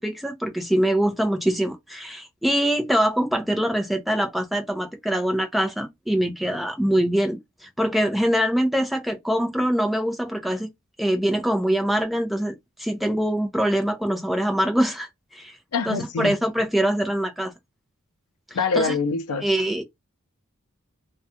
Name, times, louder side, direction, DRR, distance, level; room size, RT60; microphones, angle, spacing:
voice 1, 0.0-10.7 11.0-15.6 15.9-17.5 18.7-19.0 19.4-19.8, equal, ahead, 0.5 m, -24 dB
voice 2, 15.7-16.3 18.5-19.4, left 4 dB, 90° left, 0.4 m, -24 dB
2.5 x 2.2 x 2.6 m
head